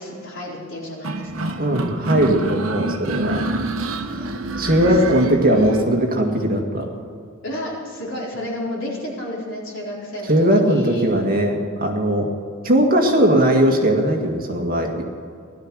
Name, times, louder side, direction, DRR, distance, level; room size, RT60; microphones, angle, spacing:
voice 1, 0.0-1.6 3.9-4.7 7.4-11.1, left 1 dB, 65° left, -4 dB, 4.3 m, -32 dB
sound 1, 1.0-5.9, right 2 dB, 75° right, 1.2 m, -27 dB
voice 2, 1.6-3.4 4.6-6.9 10.3-12.3 12.6-15.0, right 1 dB, 45° right, 2 dB, 2.0 m, -18 dB
17.0 x 12.0 x 6.2 m, 2.4 s
head